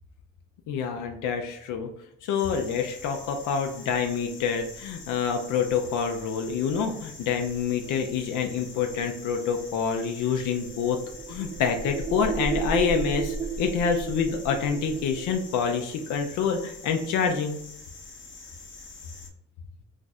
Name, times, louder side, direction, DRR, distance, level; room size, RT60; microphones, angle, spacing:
voice 1, 0.7-1.9 2.2-11.0 11.3-17.6, left 6 dB, 85° left, 4 dB, 0.5 m, -27 dB
sound 1, 2.4-19.3, left 3 dB, 40° left, 0.7 m, -45 dB
sound 2, 10.5-15.4, right 5 dB, 25° right, 0.3 m, -32 dB
2.5 x 2.3 x 4.0 m, 0.75 s
cardioid pair, 90°, 30 cm